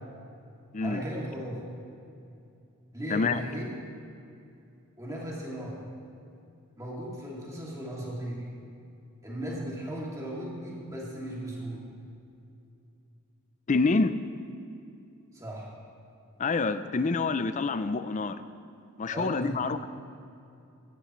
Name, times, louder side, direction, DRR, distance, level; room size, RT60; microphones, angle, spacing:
voice 1, 0.8-1.6 2.9-3.7 5.0-5.8 6.8-8.5 9.2-11.9 15.3-15.7 19.1-19.6, right 1 dB, 15° right, -5 dB, 2.5 m, -36 dB
voice 2, 3.1-3.4 13.7-14.2 16.4-18.4 19.0-19.9, left 4 dB, 35° left, 12 dB, 0.4 m, -27 dB
15.5 x 12.5 x 3.2 m, 2.6 s
head